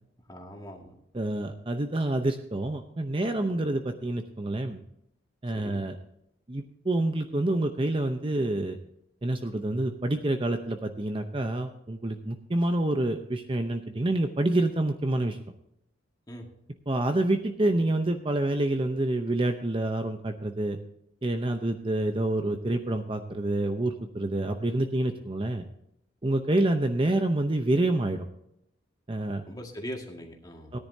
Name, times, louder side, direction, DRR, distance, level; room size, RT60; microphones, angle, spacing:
voice 1, 0.3-1.0 5.6-5.8 16.3-16.5 29.5-30.7, equal, 20° left, 1 dB, 1.9 m, -41 dB
voice 2, 1.1-4.8 5.4-6.0 6.5-8.8 9.2-15.4 16.9-20.8 21.2-25.6 26.2-28.3 29.1-29.4 30.7-30.8, right 1 dB, 25° right, 6 dB, 0.7 m, -27 dB
17.5 x 10.5 x 2.7 m, 0.77 s
head